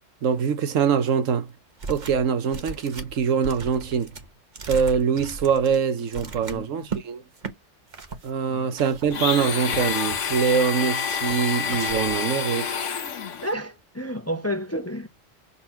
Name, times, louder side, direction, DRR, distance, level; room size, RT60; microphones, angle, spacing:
voice 1, 0.2-1.5 1.9-4.1 4.7-7.2 8.2-12.8, right 6 dB, 85° right, 1.3 m, -23 dB
sound 1, 1.8-2.2 2.5-7.0 7.4-7.5 7.9-8.3 8.8-9.5 9.9-10.5 11.0-11.4 11.7-12.3, right 4 dB, 40° right, 1.1 m, -37 dB
voice 2, 6.2-6.7 8.5-8.7 13.4-15.1, equal, 15° left, 0.6 m, -31 dB
Domestic sounds home sounds, 9.1-13.5, left 7 dB, 70° left, 1.4 m, -28 dB
6.0 x 4.3 x 5.7 m
omnidirectional pair, 1.3 m